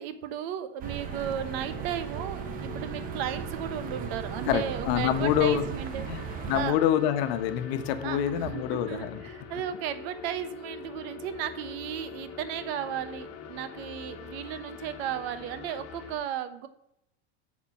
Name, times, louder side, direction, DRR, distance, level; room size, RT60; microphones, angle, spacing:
voice 1, 0.0-6.8 8.0-16.7, right 10 dB, 70° right, 11 dB, 1.0 m, -35 dB
sound 1, 0.8-16.2, left 6 dB, 50° left, 1.6 m, -44 dB
sound 2, 0.8-6.7, right 10 dB, 30° right, 0.4 m, -37 dB
voice 2, 4.5-5.6 6.1-9.2, left 10 dB, 70° left, 9 dB, 1.1 m, -26 dB
8.9 x 4.3 x 7.4 m, 0.79 s
supercardioid pair, 140°, 32 cm